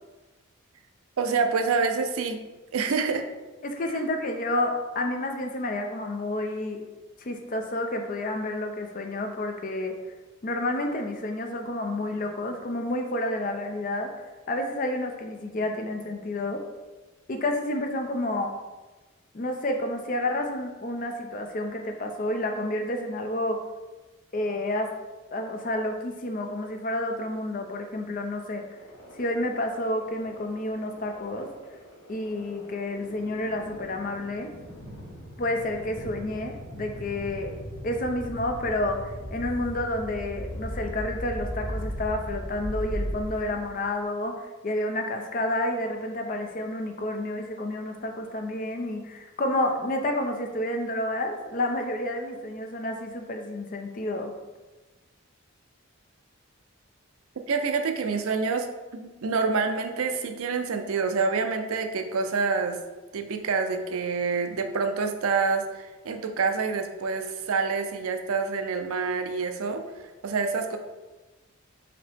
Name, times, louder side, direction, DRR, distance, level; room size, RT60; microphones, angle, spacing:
voice 1, 1.2-2.4 2.7-3.2 57.5-58.7 58.9-62.8 63.1-70.8, right 4 dB, 85° right, 6 dB, 0.5 m, -27 dB
voice 2, 3.6-6.8 7.2-9.9 10.4-14.1 14.5-16.6 17.3-18.5 19.3-23.6 24.3-24.9 25.3-28.6 29.1-31.5 32.1-34.5 35.4-37.5 37.8-54.3, left 1 dB, 40° left, 4 dB, 0.5 m, -30 dB
sound 1, 28.8-43.9, equal, 90° left, 1.2 m, -38 dB
4.8 x 2.9 x 3.5 m, 1.2 s
head